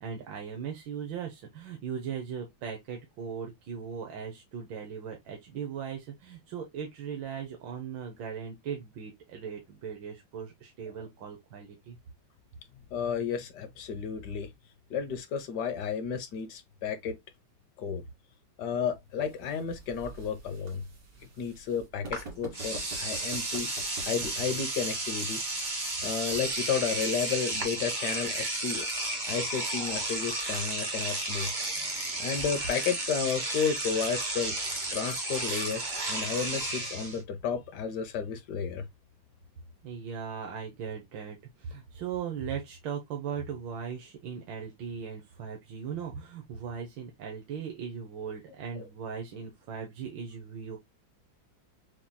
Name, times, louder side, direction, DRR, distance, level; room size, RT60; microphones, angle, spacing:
voice 1, 0.0-12.0 39.8-50.8, right 7 dB, 80° right, 1.7 m, -38 dB
voice 2, 12.9-14.5 14.9-17.1 17.8-18.0 18.6-20.8 21.4-23.7 24.1-25.4 26.0-28.9 29.3-31.5 32.2-34.5 34.9-38.8, left 6 dB, 65° left, 1.4 m, -32 dB
sound 1, 18.7-32.7, right 4 dB, 60° right, 2.3 m, -50 dB
Engine / Domestic sounds home sounds, 22.1-22.2 22.5-37.2, right 2 dB, 25° right, 1.3 m, -33 dB
7.0 x 3.0 x 2.3 m
omnidirectional pair, 2.1 m